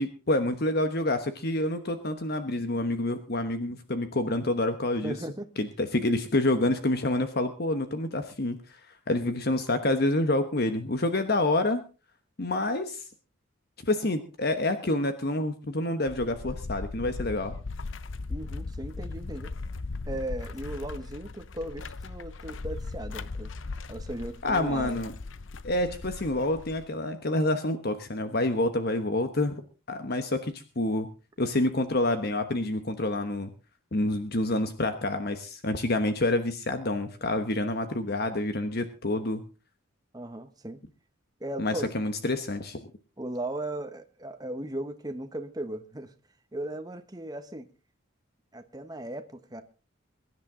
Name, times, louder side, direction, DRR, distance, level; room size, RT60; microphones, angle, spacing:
voice 1, 0.0-5.2 5.6-8.8 9.1-11.8 12.4-13.0 13.8-17.5 24.4-25.1 25.6-29.6 29.9-31.1 31.4-33.5 33.9-39.4 41.6-42.8, left 2 dB, 50° left, 1.2 m, -28 dB
voice 2, 5.0-5.5 18.3-19.5 20.1-23.5 23.9-25.0 40.1-40.8 41.4-41.9 43.2-46.1 46.5-47.7 48.5-49.6, right 1 dB, 20° right, 1.1 m, -37 dB
sound 1, 16.1-26.9, left 3 dB, 70° left, 0.7 m, -38 dB
22.5 x 11.0 x 3.8 m
head